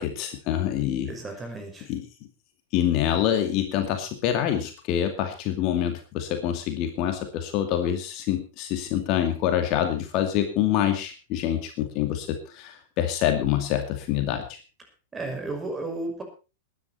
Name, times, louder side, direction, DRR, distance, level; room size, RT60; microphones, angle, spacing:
voice 1, 0.0-1.1 1.9-2.1 2.7-14.6, left 11 dB, 40° left, 6 dB, 2.4 m, -26 dB
voice 2, 1.1-1.9 15.1-16.2, right 2 dB, 15° right, 5 dB, 5.7 m, -33 dB
20.5 x 10.5 x 4.2 m, 0.33 s
figure-of-eight pair, 100°, 0 cm